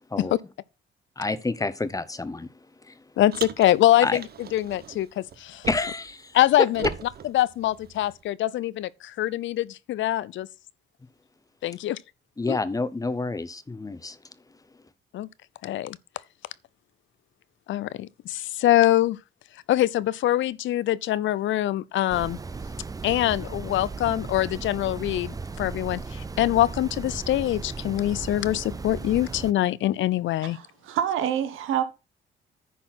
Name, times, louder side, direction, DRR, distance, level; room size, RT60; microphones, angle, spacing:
voice 1, 1.2-2.5 2.8-3.0 4.0-4.2 5.7-6.9 12.4-14.2, left 3 dB, 15° left, 0.8 m, -28 dB
voice 2, 3.2-4.2 4.5-5.7 6.3-6.8 7.3-10.5 11.6-12.0 12.5-12.6 15.1-15.3 15.6-16.0 17.7-19.2 19.7-22.4 23.0-30.6, left 14 dB, 70° left, 0.6 m, -24 dB
Car, 3.3-6.1 6.4-8.2, right 7 dB, 50° right, 0.9 m, -40 dB
sound 1, 22.1-29.5, right 4 dB, 20° right, 0.5 m, -36 dB
voice 3, 30.4-31.8, right 9 dB, 90° right, 1.4 m, -27 dB
10.0 x 4.3 x 5.8 m
cardioid pair, 90°, 20 cm